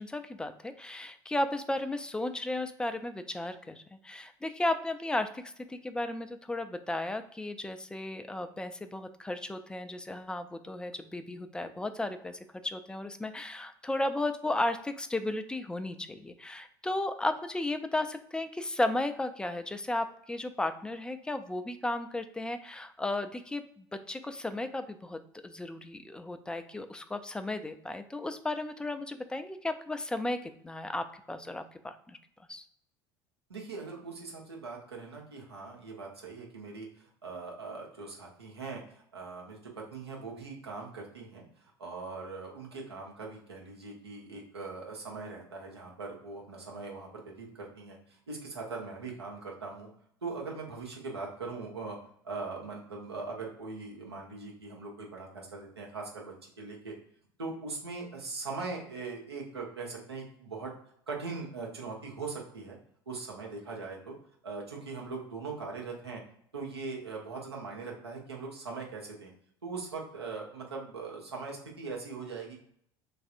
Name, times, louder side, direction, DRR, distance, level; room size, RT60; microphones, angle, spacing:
voice 1, 0.0-32.2 32.5-32.6, left 2 dB, 5° left, 9 dB, 0.3 m, -34 dB
voice 2, 33.5-49.9 50.2-52.0 52.2-56.9 57.4-60.7 61.1-62.8 63.1-64.1 64.4-66.2 66.5-69.3 69.6-72.6, right 4 dB, 80° right, -2 dB, 0.9 m, -41 dB
3.2 x 2.6 x 2.4 m, 0.67 s
figure-of-eight pair, 70°, 13 cm